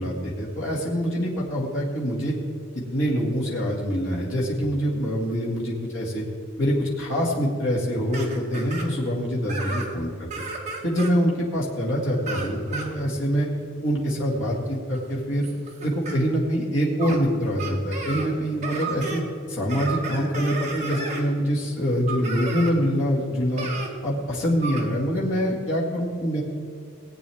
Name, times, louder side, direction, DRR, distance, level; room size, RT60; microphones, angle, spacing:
voice 1, 0.0-2.4 2.8-6.2 6.6-10.3 10.8-13.5 13.8-15.5 15.8-19.2 19.5-23.7 24.0-26.4, equal, 60° left, -4 dB, 2.1 m, -25 dB
sound 1, 8.1-8.9 9.5-10.0 10.3-11.1 12.1-12.9 14.3-14.5 14.9-16.2 17.0-17.2 17.6-18.3 18.6-19.2 19.7-21.2 22.1-22.7 23.6-23.9 24.6-24.8, right 3 dB, 35° right, 1.6 m, -33 dB
18.5 x 8.7 x 3.5 m, 2.3 s
head